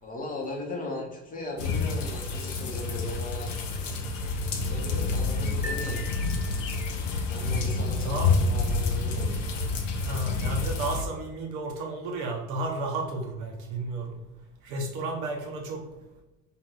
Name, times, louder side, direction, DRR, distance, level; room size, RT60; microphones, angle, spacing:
voice 1, 0.0-3.6 4.6-6.1 7.3-9.3, left 1 dB, 20° left, -1 dB, 0.8 m, -38 dB
sound 1, 1.6-11.0, left 3 dB, 80° left, 0.5 m, -28 dB
sound 2, 5.6-7.1, left 1 dB, 10° right, 0.7 m, -39 dB
voice 2, 10.0-14.2 14.6-15.8, right 2 dB, 55° right, 1 dB, 0.8 m, -32 dB
2.7 x 2.5 x 3.1 m, 0.96 s
figure-of-eight pair, 65°, 37 cm